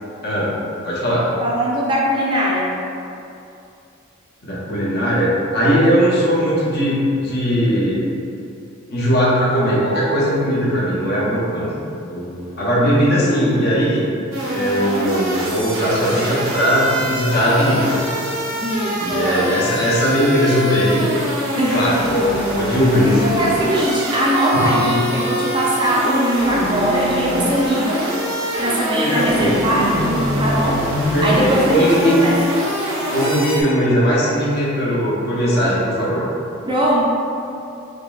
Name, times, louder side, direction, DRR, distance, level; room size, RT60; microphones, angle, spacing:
voice 1, 0.2-0.6 0.8-1.3 4.4-8.0 8.9-11.7 12.0-14.0 14.5-18.1 18.9-21.1 21.7-23.5 24.5-25.0 29.0-29.7 31.1-32.2 33.1-36.2, equal, 50° left, -6 dB, 0.7 m, -19 dB
voice 2, 1.4-2.8 18.5-19.5 21.6-21.9 23.1-28.0 28.6-30.8 31.2-32.3 36.7-37.1, right 1 dB, 25° right, -5 dB, 0.4 m, -20 dB
sound 1, 14.3-33.6, equal, 80° right, 0.7 m, -24 dB
6.2 x 2.1 x 2.3 m, 2.6 s
head